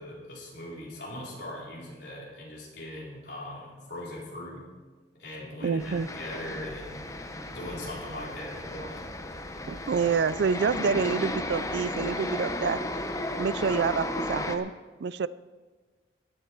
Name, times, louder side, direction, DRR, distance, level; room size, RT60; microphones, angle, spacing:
voice 1, 0.0-4.7 5.2-7.1 7.5-9.0, left 1 dB, 65° left, -4 dB, 4.1 m, -40 dB
voice 2, 5.6-6.1 9.7-12.8 13.4-14.7 15.0-15.3, right 5 dB, 65° right, 18 dB, 0.4 m, -27 dB
sound 1, 5.8-14.6, left 1 dB, 15° left, 0.8 m, -34 dB
15.5 x 11.0 x 4.5 m, 1.3 s
head